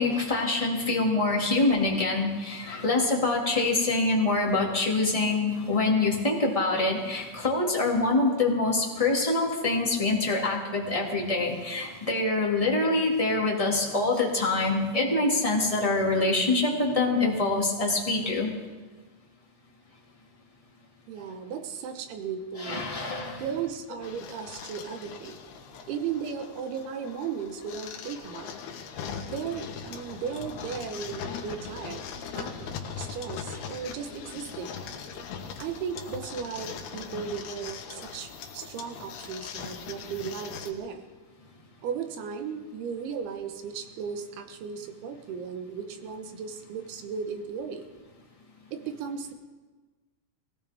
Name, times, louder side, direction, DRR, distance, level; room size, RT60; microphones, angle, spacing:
voice 1, 0.0-18.5 22.6-23.4, left 2 dB, 15° left, -2 dB, 1.1 m, -25 dB
voice 2, 21.1-22.9 23.4-25.4 25.9-28.5 29.3-32.0 32.3-34.7 35.6-41.0 41.8-47.9 48.7-49.3, right 7 dB, 85° right, 7 dB, 3.1 m, -36 dB
sound 1, 24.0-40.7, left 7 dB, 85° left, 3.2 m, -40 dB
20.5 x 17.5 x 3.5 m, 1.3 s
omnidirectional pair, 4.5 m